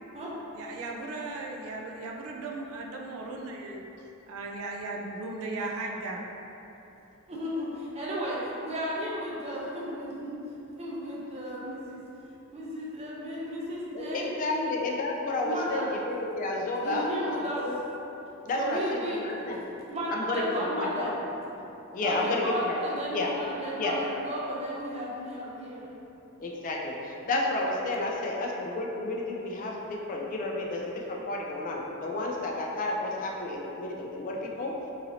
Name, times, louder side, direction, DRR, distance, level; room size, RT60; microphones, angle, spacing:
voice 1, 0.5-6.2, right 2 dB, 75° right, 0 dB, 0.4 m, -37 dB
voice 2, 7.3-10.4 10.8-12.0 12.5-14.7 15.4-15.9 16.8-17.7 18.5-19.2 19.9-21.2 22.0-25.8, equal, 30° right, -6 dB, 0.5 m, -34 dB
voice 3, 13.9-17.8 18.5-19.6 20.1-21.1 21.9-22.8 23.1-23.3 23.7-24.0 26.4-34.7, left 2 dB, 40° left, -1 dB, 0.3 m, -31 dB
2.9 x 2.6 x 2.7 m, 3.0 s
head